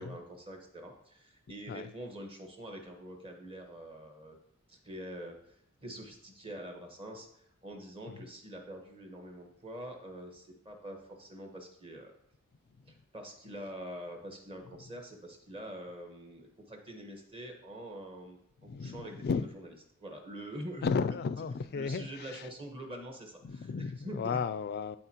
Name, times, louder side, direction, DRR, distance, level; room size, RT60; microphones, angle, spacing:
voice 1, 0.0-4.4 4.7-5.5 5.8-12.1 12.9-19.7 20.0-21.1 21.7-24.4, equal, 25° right, 1.2 m, -45 dB
voice 2, 18.7-19.5 20.8-22.4 23.4-25.0, left 5 dB, 50° left, 0.3 m, -34 dB
11.5 x 4.4 x 2.9 m
head